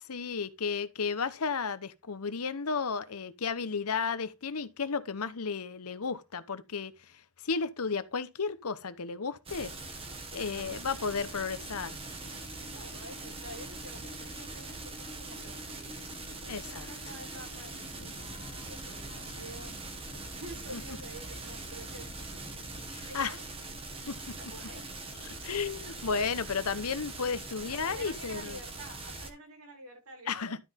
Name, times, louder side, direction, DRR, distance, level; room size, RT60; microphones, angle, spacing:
voice 1, 0.0-9.7 10.3-12.0 16.5-16.9 20.7-20.8 22.9-23.4 24.1-24.2 25.3-28.6 30.3-30.6, left 5 dB, 85° left, 0.9 m, -33 dB
sound 1, 9.5-29.3, right 3 dB, 25° right, 1.7 m, -42 dB
voice 2, 10.5-11.1 12.7-18.1 18.7-19.8 20.1-22.6 23.0-23.4 24.4-24.9 27.7-30.4, right 1 dB, 85° right, 6.9 m, -49 dB
sound 2, 10.6-25.6, left 1 dB, 10° right, 2.2 m, -53 dB
Breathing / Train, 17.6-23.1, left 1 dB, 35° left, 1.2 m, -50 dB
12.0 x 5.4 x 3.7 m
head